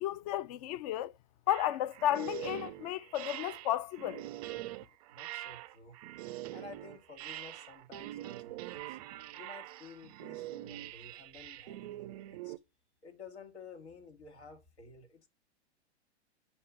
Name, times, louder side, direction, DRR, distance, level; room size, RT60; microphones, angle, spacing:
voice 1, 0.0-1.1 1.5-4.2, left 13 dB, 35° left, 0.4 m, -33 dB
sound 1, 1.5-12.6, right 15 dB, 35° right, 0.4 m, -44 dB
voice 2, 5.1-6.0 6.5-9.0 9.4-12.5 13.0-15.3, left 4 dB, 75° left, 2.0 m, -52 dB
5.5 x 3.6 x 5.6 m
hypercardioid pair, 110°, 34 cm